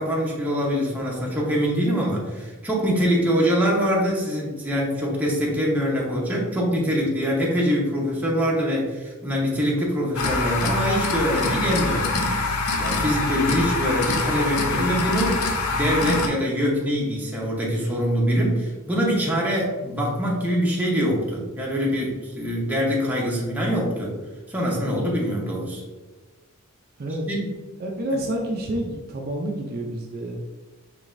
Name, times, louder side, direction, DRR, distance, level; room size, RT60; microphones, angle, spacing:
voice 1, 0.0-12.2 12.8-15.4 15.7-24.2 24.5-25.8 27.3-27.5, equal, 5° right, -4 dB, 0.9 m, -24 dB
sound 1, 10.1-16.3, left 3 dB, 70° left, 0.6 m, -25 dB
voice 2, 27.8-30.5, right 1 dB, 45° right, 0 dB, 0.5 m, -28 dB
4.9 x 3.3 x 2.5 m, 1.2 s
head